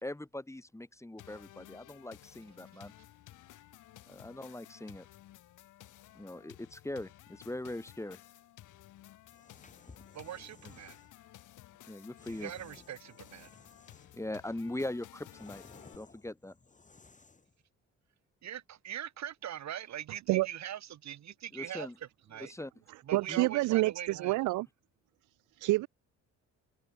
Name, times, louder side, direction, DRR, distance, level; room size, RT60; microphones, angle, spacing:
voice 1, 0.0-2.9 4.1-5.1 6.2-8.2 11.9-12.5 14.1-15.6 15.9-16.5 21.5-21.9 22.4-22.7 23.3-23.5, left 1 dB, 10° left, 2.2 m, -41 dB
sound 1, 1.2-16.0, left 14 dB, 85° left, 5.8 m, -55 dB
sound 2, 9.2-11.1 12.2-14.3 14.7-17.6, left 3 dB, 25° left, 5.2 m, -58 dB
voice 2, 10.1-11.0 12.3-13.5 18.4-21.9 22.3-22.5 23.0-24.4, right 11 dB, 65° right, 2.4 m, -42 dB
voice 3, 23.1-24.7 25.6-25.9, right 20 dB, 85° right, 0.5 m, -27 dB
cardioid pair, 90°, 30 cm